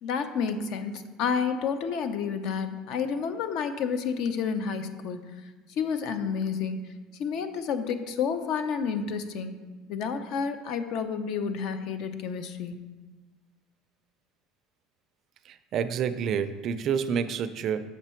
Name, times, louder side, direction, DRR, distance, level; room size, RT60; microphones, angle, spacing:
voice 1, 0.0-5.2 5.8-6.8 7.2-9.5 9.9-12.7, left 6 dB, 55° left, 9 dB, 0.6 m, -30 dB
voice 2, 15.7-17.9, right 7 dB, 40° right, 11 dB, 0.4 m, -28 dB
7.1 x 5.8 x 4.4 m, 1.3 s
cardioid pair, 150°, 0 cm